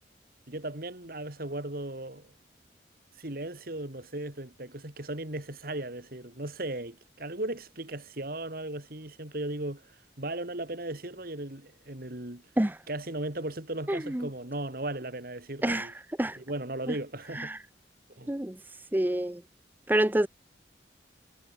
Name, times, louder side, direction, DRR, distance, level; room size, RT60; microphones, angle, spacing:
voice 1, 0.5-2.3 3.2-12.4 12.9-15.9 16.4-17.5 18.1-18.3, right 1 dB, 55° right, 2.7 m, -37 dB
voice 2, 13.9-14.3 15.6-15.9 16.2-16.4 17.4-17.6 18.3-18.6 18.9-19.4 19.9-20.3, right 1 dB, 10° right, 0.6 m, -27 dB
head